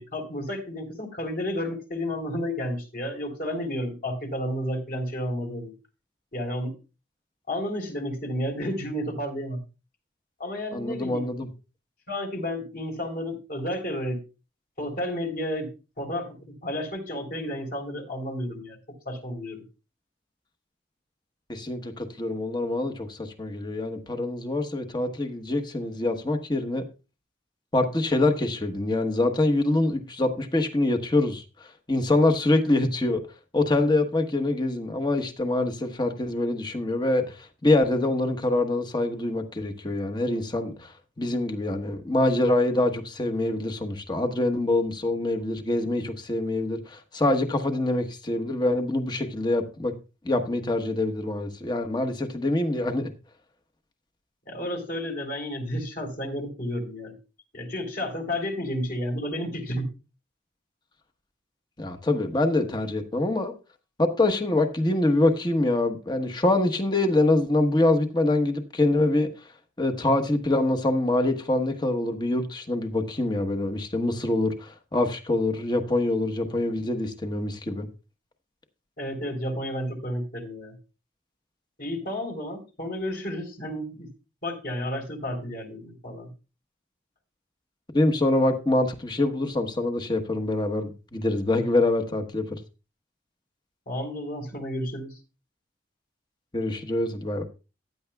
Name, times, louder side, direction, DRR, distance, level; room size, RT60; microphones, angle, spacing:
voice 1, 0.0-5.7 6.3-6.7 7.5-9.6 10.4-11.3 12.1-14.2 14.8-15.7 16.0-18.8 19.1-19.6 54.5-57.1 57.5-59.9 79.0-80.7 81.8-84.1 84.4-86.3 93.9-95.2, equal, 50° left, 3.7 m, -31 dB
voice 2, 10.7-11.5 21.5-26.8 27.7-33.2 33.5-49.9 50.2-53.1 61.8-63.5 64.0-69.5 69.8-77.9 87.9-92.6 96.5-97.4, left 2 dB, 25° left, 1.1 m, -25 dB
15.0 x 10.0 x 2.3 m
head